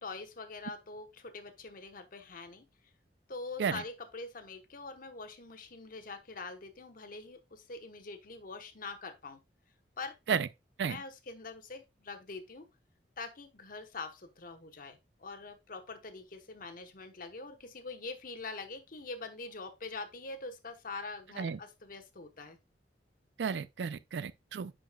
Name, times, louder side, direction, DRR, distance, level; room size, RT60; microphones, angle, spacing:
voice 1, 0.0-2.7 3.3-9.4 10.0-10.1 10.8-12.7 13.2-22.6, left 3 dB, 55° left, 1.1 m, -44 dB
voice 2, 23.4-24.7, right 6 dB, 75° right, 0.4 m, -32 dB
10.0 x 5.0 x 2.3 m
head